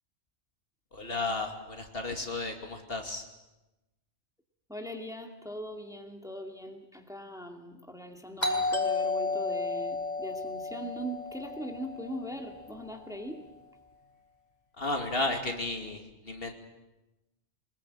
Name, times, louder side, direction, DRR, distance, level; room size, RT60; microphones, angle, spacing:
voice 1, 0.9-3.2 14.8-16.5, left 2 dB, 55° left, 4 dB, 2.8 m, -33 dB
voice 2, 4.7-13.4, equal, 5° right, 3 dB, 2.3 m, -40 dB
Doorbell, 8.4-13.0, left 3 dB, 40° left, 4.1 m, -33 dB
24.0 x 21.0 x 8.8 m, 1.0 s
omnidirectional pair, 1.1 m